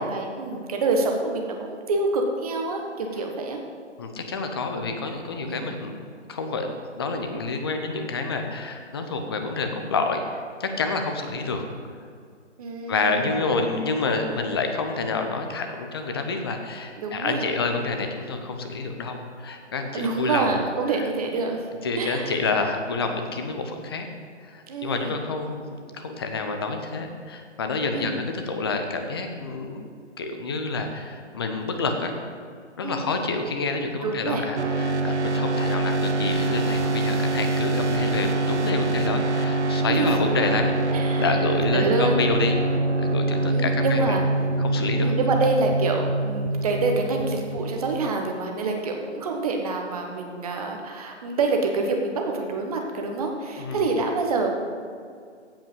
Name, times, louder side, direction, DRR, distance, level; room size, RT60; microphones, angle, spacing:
voice 1, 0.0-3.6 5.4-5.8 12.6-13.5 17.0-17.5 19.9-21.7 22.0-22.4 24.7-25.2 27.9-28.2 32.8-33.0 34.0-34.5 39.9-40.1 40.9-41.3 41.7-42.2 43.5-44.2 45.0-54.5, right 3 dB, 30° right, 2 dB, 1.3 m, -27 dB
voice 2, 4.0-5.9 6.3-11.6 12.9-20.6 21.8-24.1 24.4-29.8 30.2-32.1 32.8-42.7 43.0-44.2 44.6-45.1 53.6-53.9, left 3 dB, 20° left, 5 dB, 0.7 m, -28 dB
sound 1, 34.6-48.1, right 2 dB, 70° right, 1.2 m, -25 dB
16.0 x 5.5 x 5.4 m, 2.2 s
figure-of-eight pair, 150°, 36 cm